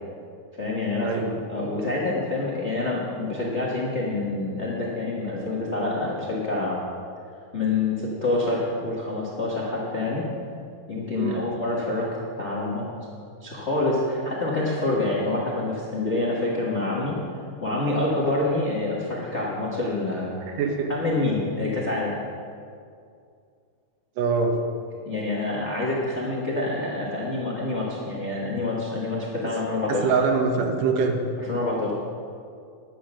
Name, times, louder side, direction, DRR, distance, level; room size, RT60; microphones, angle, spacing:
voice 1, 0.6-1.2 1.5-6.8 7.5-10.3 10.9-12.1 12.4-12.9 13.4-17.2 17.6-20.4 20.9-22.1 25.0-30.0 31.5-31.9, left 2 dB, 85° left, -5 dB, 0.6 m, -27 dB
voice 2, 11.2-11.5 20.6-20.9 24.2-24.5 29.4-29.5 29.9-31.2, right 5 dB, 70° right, 3 dB, 2.5 m, -24 dB
11.5 x 8.8 x 6.2 m, 2.3 s
omnidirectional pair, 4.1 m